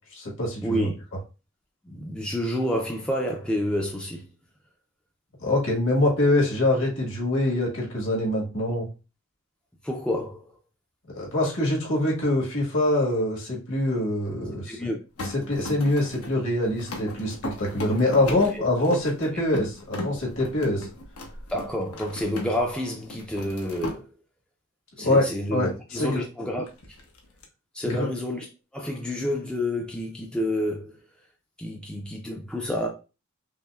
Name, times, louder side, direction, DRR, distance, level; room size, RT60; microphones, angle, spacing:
voice 1, 0.1-0.9 5.4-8.9 11.1-14.9 15.3-20.9 25.0-26.2 27.8-28.1, left 1 dB, 65° left, 1.4 m, -24 dB
voice 2, 1.8-4.3 9.8-10.5 14.7-15.0 18.3-19.0 21.5-24.1 25.0-27.0 27.7-28.5 28.7-31.0 31.6-32.9, left 1 dB, 5° left, 0.4 m, -29 dB
sound 1, 15.2-22.7 23.0-24.0 26.7-27.4, left 1 dB, 90° left, 0.8 m, -37 dB
5.4 x 2.0 x 2.3 m
head